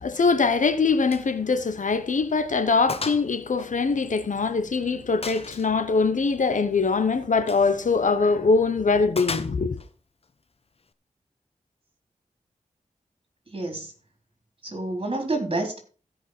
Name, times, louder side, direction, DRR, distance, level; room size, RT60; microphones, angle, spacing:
voice 1, 0.0-9.8, left 4 dB, 70° left, 1.1 m, -23 dB
Gunshot gunfire, 1.1-1.3 1.6-1.8 2.2-2.3 2.9-3.3 3.6-4.6 5.2-5.7 7.4-7.7 9.2-9.9, left 4 dB, 45° left, 0.8 m, -34 dB
voice 2, 13.5-13.9 14.6-15.8, right 2 dB, 40° right, 4.0 m, -28 dB
16.5 x 5.5 x 4.6 m
wide cardioid pair, 75°, 14 cm